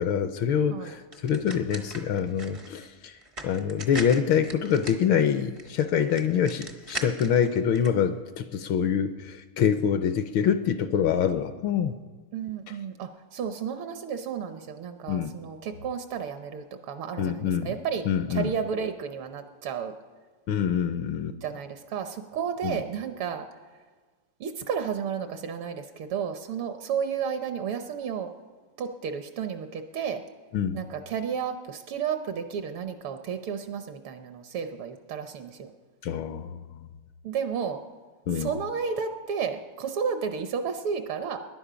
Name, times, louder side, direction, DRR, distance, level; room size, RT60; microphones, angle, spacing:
voice 1, 0.0-3.2 3.4-12.0 15.1-15.3 17.2-17.7 18.1-18.5 20.5-21.4 22.6-22.8 30.5-30.8 36.0-36.6 38.3-38.5, left 8 dB, 75° left, 10 dB, 1.3 m, -25 dB
sound 1, 1.1-7.9, right 2 dB, 45° right, 0.4 m, -40 dB
voice 2, 12.3-19.9 21.4-23.5 24.4-28.3 28.8-30.2 30.7-35.7 37.2-37.8 38.3-41.4, right 7 dB, 75° right, 7 dB, 1.6 m, -32 dB
20.0 x 10.5 x 5.0 m, 1.4 s
omnidirectional pair, 2.4 m